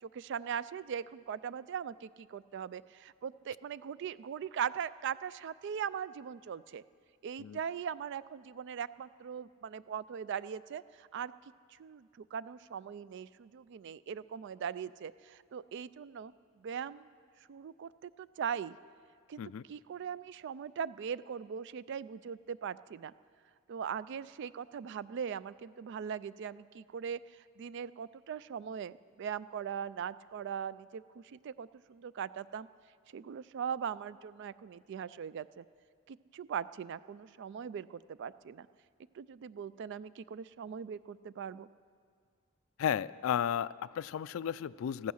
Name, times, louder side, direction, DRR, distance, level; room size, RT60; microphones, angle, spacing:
voice 1, 0.0-6.8 7.2-11.3 11.8-16.3 16.6-17.1 17.5-18.8 19.3-19.4 19.7-23.1 23.7-32.7 33.1-35.6 36.1-38.7 39.1-41.7, right 7 dB, 55° right, 17 dB, 0.3 m, -40 dB
voice 2, 42.8-45.1, left 9 dB, 65° left, 18 dB, 0.3 m, -33 dB
15.0 x 15.0 x 6.3 m, 2.1 s
head